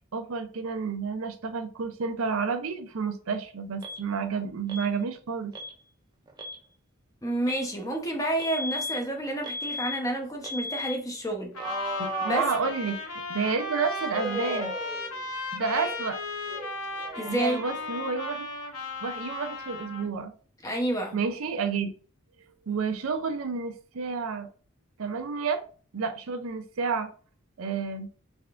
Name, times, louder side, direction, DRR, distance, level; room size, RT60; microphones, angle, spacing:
voice 1, 0.1-5.5 12.0-13.0 13.3-14.7 15.5-16.2 17.3-18.5 19.0-20.3 21.1-21.9 22.7-24.5 25.0-25.6 25.9-27.1 27.6-28.1, right 5 dB, 75° right, 0.5 m, -30 dB
Alarm, 3.8-4.0 4.7-4.9 5.5-5.8 6.3-6.6 7.5-7.7 8.4-9.0 9.4-10.0 10.4-11.0 11.6-13.1 14.1-15.3 15.6-16.2 16.5-18.2, equal, 20° right, 0.3 m, -36 dB
voice 2, 7.2-11.7 12.3-12.4 17.1-17.6 20.6-21.2, right 1 dB, 15° left, 0.7 m, -29 dB
Trumpet, 11.5-20.1, left 3 dB, 85° left, 0.8 m, -36 dB
3.5 x 3.3 x 2.4 m
head